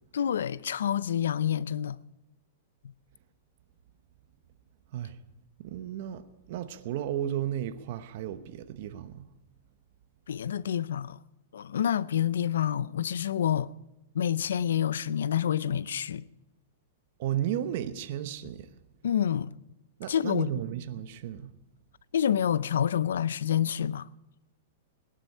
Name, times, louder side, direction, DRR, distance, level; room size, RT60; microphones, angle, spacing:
voice 1, 0.1-2.0 10.3-11.2 11.5-13.7 14.1-16.2 19.0-19.5 20.1-20.5 22.1-24.1, left 9 dB, 90° left, 0.5 m, -28 dB
voice 2, 5.6-9.3 17.2-18.7 20.0-21.5, right 11 dB, 55° right, 1.0 m, -34 dB
18.0 x 11.5 x 5.5 m
hypercardioid pair, 150°, 0 cm